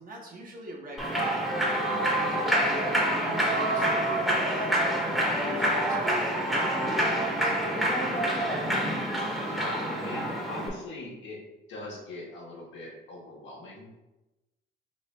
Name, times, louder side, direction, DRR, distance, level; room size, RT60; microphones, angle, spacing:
voice 1, 0.0-1.5 2.2-4.8 5.1-7.9, right 1 dB, 45° right, -1 dB, 1.1 m, -41 dB
Human voice / Clapping / Cheering, 1.0-10.7, right 1 dB, ahead, 1.0 m, -27 dB
voice 2, 9.1-11.4 11.7-14.0, left 2 dB, 70° left, -3 dB, 1.3 m, -41 dB
4.1 x 3.2 x 3.2 m, 1.0 s
cardioid pair, 90°, 20 cm